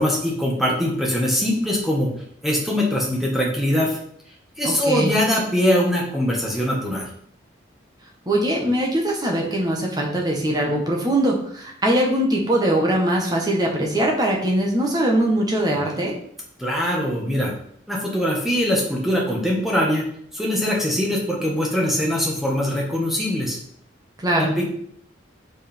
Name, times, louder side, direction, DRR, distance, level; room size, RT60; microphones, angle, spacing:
voice 1, 0.0-2.1 2.4-4.0 4.6-7.1 16.6-17.5 17.9-20.0 20.3-23.6 24.3-24.7, equal, ahead, -3 dB, 1.4 m, -22 dB
voice 2, 4.6-5.1 8.3-16.1 24.2-24.5, right 1 dB, 20° right, -1 dB, 1.3 m, -21 dB
5.3 x 5.0 x 4.4 m, 0.65 s
head